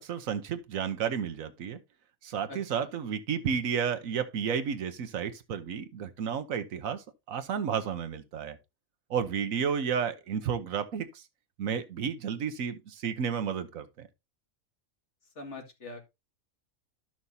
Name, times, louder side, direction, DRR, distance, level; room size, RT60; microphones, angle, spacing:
voice 1, 0.0-1.8 2.2-8.6 9.1-11.2 11.6-14.1, right 7 dB, 75° right, 1.3 m, -32 dB
voice 2, 15.4-16.0, left 2 dB, 55° left, 2.3 m, -42 dB
13.0 x 6.0 x 2.7 m
omnidirectional pair, 1.4 m